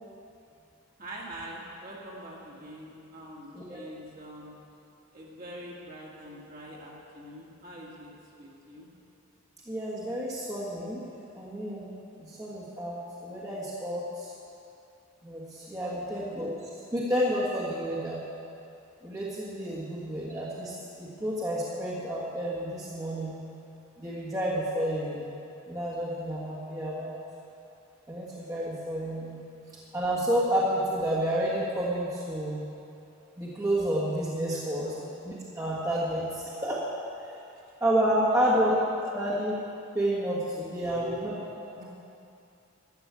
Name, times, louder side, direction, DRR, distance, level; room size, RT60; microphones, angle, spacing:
voice 1, 1.0-4.5 5.1-8.1 8.4-8.9 15.9-16.2 19.7-19.9 34.5-35.0 38.4-38.6 40.8-41.3 41.8-41.9, right 1 dB, 40° right, -5 dB, 2.5 m, -44 dB
voice 2, 9.7-11.0 11.3-11.9 12.2-14.3 15.2-18.2 19.0-20.7 21.0-23.4 24.0-25.3 25.7-27.2 28.1-29.4 29.9-32.6 33.4-34.9 35.2-36.8 37.8-38.7 39.0-39.5 39.9-41.3, equal, 15° right, -8 dB, 1.6 m, -30 dB
13.0 x 7.6 x 8.4 m, 2.7 s
head